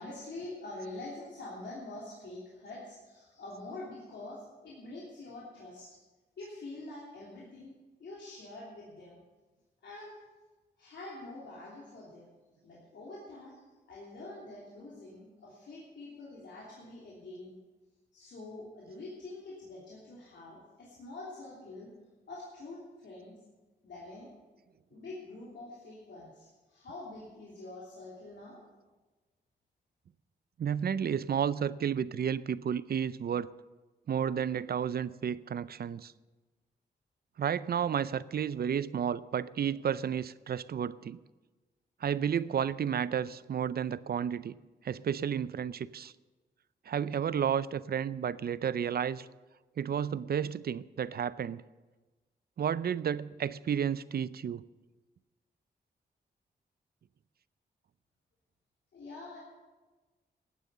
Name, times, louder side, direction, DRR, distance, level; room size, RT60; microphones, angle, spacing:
voice 1, 0.0-6.0 6.4-9.2 9.8-10.2 10.8-12.3 12.6-17.6 18.1-21.9 22.3-23.4 23.8-24.3 24.9-28.6 58.9-59.4, left 2 dB, 80° left, -6 dB, 3.1 m, -46 dB
voice 2, 30.6-33.5 34.1-36.1 37.4-41.2 42.0-44.5 44.8-46.1 46.9-49.3 49.8-51.6 52.6-54.6, right 8 dB, 55° right, 18 dB, 0.5 m, -32 dB
15.0 x 9.3 x 6.8 m, 1.2 s
cardioid pair, 70°, 19 cm